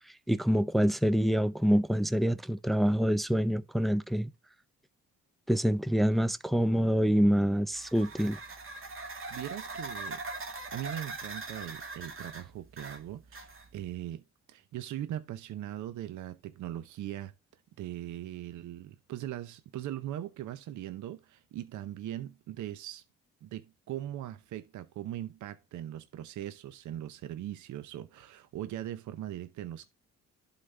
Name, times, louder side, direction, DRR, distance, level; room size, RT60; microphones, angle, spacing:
voice 1, 0.3-4.3 5.5-8.4, equal, ahead, 0.4 m, -26 dB
sound 1, 7.7-13.9, right 3 dB, 45° right, 1.8 m, -41 dB
voice 2, 9.3-17.3 17.8-23.0 23.4-29.9, right 12 dB, 75° right, 0.7 m, -40 dB
11.5 x 4.0 x 3.2 m
cardioid pair, 90°, 30 cm